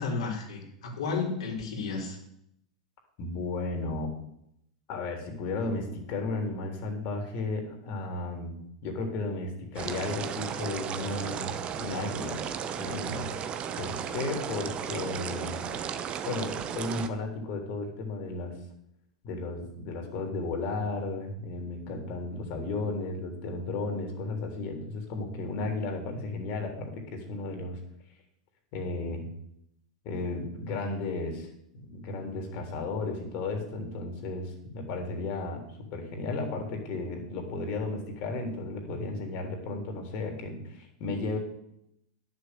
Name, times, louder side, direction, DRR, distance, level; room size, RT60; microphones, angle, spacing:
voice 1, 0.0-2.2, left 4 dB, 70° left, 0 dB, 3.6 m, -32 dB
voice 2, 3.2-4.1 4.9-8.6 8.8-12.4 12.8-15.6 16.3-18.6 19.2-27.8 28.7-29.3 30.0-31.5 31.7-35.6 35.9-41.4, left 3 dB, 50° left, 3 dB, 3.6 m, -34 dB
sound 1, 9.8-17.1, right 8 dB, 35° right, 1.1 m, -35 dB
10.5 x 6.9 x 8.0 m, 0.76 s
hypercardioid pair, 100°, 3 cm